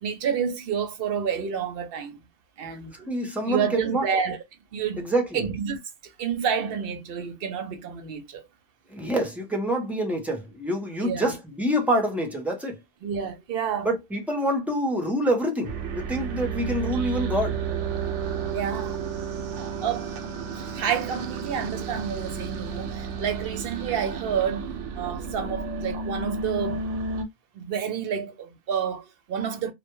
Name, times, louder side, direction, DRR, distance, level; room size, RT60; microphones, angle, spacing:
voice 1, 0.0-2.2 2.6-3.1 3.5-4.4 4.7-5.0 5.3-8.4 11.0-11.3 13.0-13.9 18.5-19.0 19.8-20.1 20.5-26.9 27.5-29.7, right 7 dB, 60° right, 0.7 m, -29 dB
voice 2, 2.9-4.1 5.0-5.4 8.9-12.8 13.8-17.6, equal, ahead, 0.3 m, -26 dB
sound 1, 15.6-27.2, right 5 dB, 90° right, 0.9 m, -32 dB
2.1 x 2.1 x 2.9 m
omnidirectional pair, 1.2 m